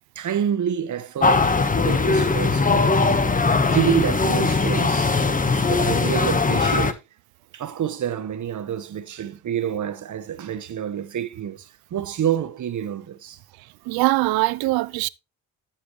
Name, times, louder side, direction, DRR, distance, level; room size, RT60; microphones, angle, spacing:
voice 1, 0.1-1.6 1.8-3.2 3.5-5.2 5.4-7.0 7.5-13.4, right 9 dB, 55° right, 1.4 m, -28 dB
sound 1, 1.2-6.9, left 4 dB, 20° left, 1.4 m, -20 dB
voice 2, 13.9-15.1, right 20 dB, 85° right, 0.7 m, -21 dB
13.0 x 7.4 x 3.2 m
supercardioid pair, 75°, 36 cm